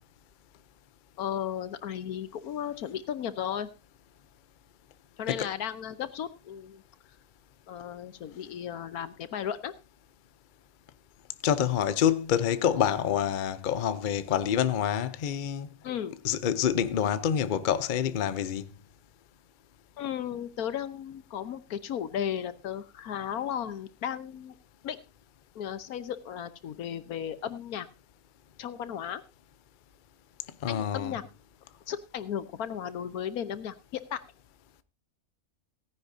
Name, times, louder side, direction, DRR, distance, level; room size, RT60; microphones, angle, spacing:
voice 1, 1.2-3.7 5.2-6.8 7.7-9.7 15.8-16.2 20.0-24.5 24.8-25.0 25.5-27.9 28.6-29.2 30.7-31.2 31.9-34.2, left 9 dB, 85° left, 1.4 m, -35 dB
voice 2, 11.4-15.7 16.2-18.7 30.6-31.1, left 9 dB, 50° left, 0.6 m, -27 dB
17.0 x 10.0 x 2.7 m
omnidirectional pair, 1.6 m